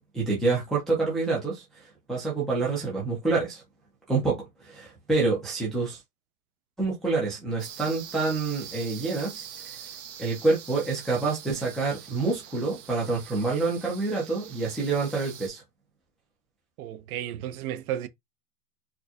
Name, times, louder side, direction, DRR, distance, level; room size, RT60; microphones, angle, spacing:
voice 1, 0.0-1.8 2.1-3.6 4.1-6.0 6.8-9.5 10.2-15.6, right 3 dB, ahead, 0.3 m, -27 dB
sound 1, 7.6-15.5, right 9 dB, 50° right, 1.1 m, -44 dB
voice 2, 16.8-18.1, right 11 dB, 65° right, 0.7 m, -33 dB
4.4 x 2.2 x 2.8 m
supercardioid pair, 145°, 46 cm